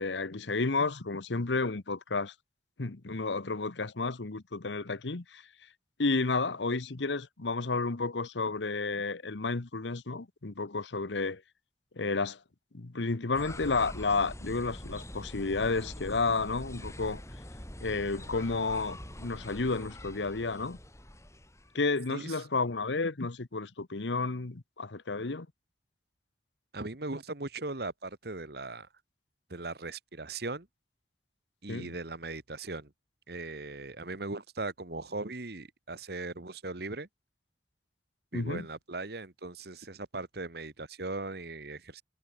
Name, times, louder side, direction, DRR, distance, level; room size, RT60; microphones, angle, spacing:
voice 1, 0.0-2.3 2.8-5.4 6.0-11.4 12.0-12.4 12.7-17.2 17.8-20.8 21.7-25.5 31.7-31.9 38.3-38.7, left 3 dB, 85° left, 1.1 m, -31 dB
sound 1, 13.3-21.7, left 1 dB, 15° left, 5.5 m, -44 dB
voice 2, 22.1-22.4 26.7-28.9 29.5-30.7 31.6-32.9 33.3-37.1 38.3-42.0, right 2 dB, 60° right, 1.7 m, -39 dB
head